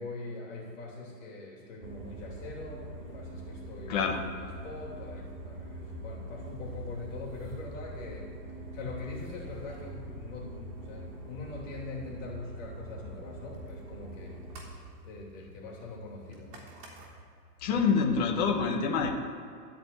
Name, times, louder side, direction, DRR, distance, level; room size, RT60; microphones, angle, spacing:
voice 1, 0.0-8.3 8.7-16.7 17.7-17.9, left 3 dB, 50° left, -2 dB, 3.1 m, -43 dB
sound 1, 1.8-17.2, right 1 dB, 50° right, 3.5 m, -44 dB
voice 2, 3.9-4.2 17.6-19.1, left 5 dB, 25° left, 1 dB, 1.0 m, -26 dB
13.5 x 5.2 x 8.6 m, 2.4 s
hypercardioid pair, 170°, 49 cm